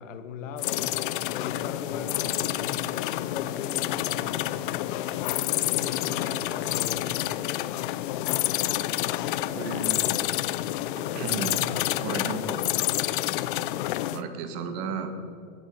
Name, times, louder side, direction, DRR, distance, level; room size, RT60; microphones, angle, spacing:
voice 1, 0.0-4.6 5.2-7.4, left 6 dB, 60° left, 10 dB, 1.3 m, -39 dB
sound 1, 0.6-14.2, left 14 dB, 40° left, 0.5 m, -28 dB
voice 2, 9.5-10.1 10.9-11.6 12.0-12.6 14.1-15.1, right 5 dB, 35° right, 8 dB, 1.6 m, -34 dB
15.5 x 9.2 x 5.4 m, 2.6 s
hypercardioid pair, 135°, 42 cm